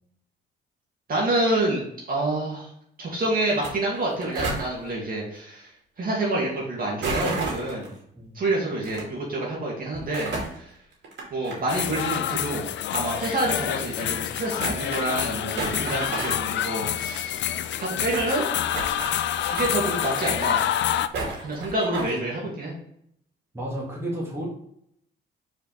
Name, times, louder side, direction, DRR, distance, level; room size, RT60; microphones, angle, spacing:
voice 1, 1.1-2.7 3.0-5.7 6.0-7.9 8.3-10.7 11.3-12.7 12.9-17.5 17.8-18.5 19.5-20.6 21.4-22.7, right 2 dB, 45° right, -3 dB, 2.2 m, -27 dB
sound 1, 3.5-3.7 3.9-4.6 7.0-7.9 8.8-9.0 9.9-10.6 11.0-12.0 12.3-12.4 13.2-13.3 13.8-13.9 14.2-14.3 14.6-15.3 15.6-16.5 16.8-16.9 17.1-17.2 17.4-18.3 18.7-19.7 20.1-20.8 21.1-22.2, right 3 dB, 65° right, 2.5 m, -32 dB
sound 2, 11.7-21.1, left 11 dB, 65° left, 0.4 m, -27 dB
voice 2, 23.5-24.5, right 1 dB, 10° right, -5 dB, 2.5 m, -32 dB
4.8 x 4.7 x 4.6 m, 0.72 s
cardioid pair, 90°, 20 cm